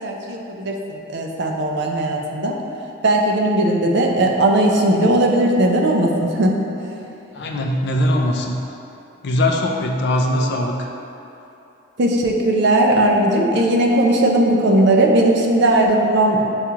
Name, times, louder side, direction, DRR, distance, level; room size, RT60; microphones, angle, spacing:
voice 1, 0.0-2.6 3.0-6.5 12.0-16.4, right 1 dB, 55° right, 1 dB, 0.4 m, -17 dB
voice 2, 7.3-8.6 9.2-10.9, left 1 dB, 50° left, 1 dB, 0.4 m, -20 dB
7.0 x 2.4 x 2.8 m, 2.8 s
head